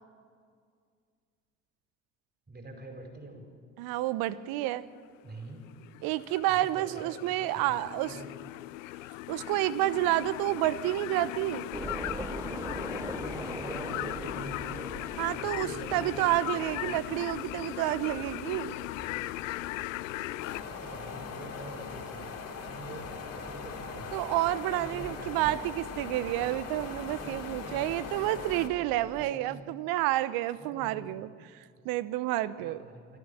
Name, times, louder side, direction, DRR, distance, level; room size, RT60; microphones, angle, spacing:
voice 1, 2.5-3.5 5.2-5.6 6.5-8.3 13.1-17.0 20.1-24.2 24.6-25.6 27.1-28.5 29.0-29.7 30.6-31.2 31.8-31.9 32.6-33.2, right 2 dB, 25° right, 4 dB, 4.9 m, -46 dB
voice 2, 3.8-4.8 6.0-8.2 9.3-11.7 15.2-18.8 24.1-32.8, right 15 dB, 65° right, 16 dB, 0.9 m, -30 dB
sound 1, 5.6-20.6, left 17 dB, 80° left, 0.5 m, -38 dB
sound 2, 11.7-29.3, right 2 dB, 10° right, 0.7 m, -45 dB
sound 3, 20.4-28.7, left 6 dB, 55° left, 2.7 m, -41 dB
29.0 x 13.0 x 7.0 m, 2.1 s
hypercardioid pair, 55°, 39 cm